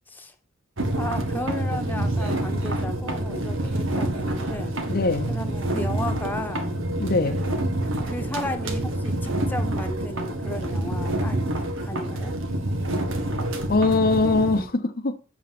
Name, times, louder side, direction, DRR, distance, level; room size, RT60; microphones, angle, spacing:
sound 1, 0.8-14.6, right 1 dB, 80° right, 1.7 m, -27 dB
voice 1, 1.0-4.8 5.3-6.7 8.0-12.3, left 1 dB, 10° left, 1.2 m, -34 dB
voice 2, 4.9-5.4 7.0-7.4 13.7-15.2, left 3 dB, 50° left, 0.8 m, -22 dB
8.5 x 7.2 x 5.9 m
head